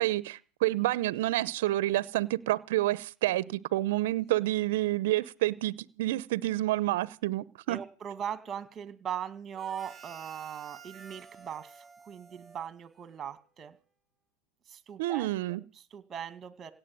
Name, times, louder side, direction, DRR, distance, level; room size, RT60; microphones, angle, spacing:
voice 1, 0.0-7.8 15.0-15.6, right 16 dB, 75° right, 0.8 m, -29 dB
voice 2, 7.7-13.8 14.7-16.7, right 8 dB, 30° right, 2.1 m, -40 dB
Harmonica, 9.5-13.3, right 6 dB, 5° right, 5.4 m, -51 dB
17.0 x 7.6 x 9.2 m
supercardioid pair, 120°, 0 cm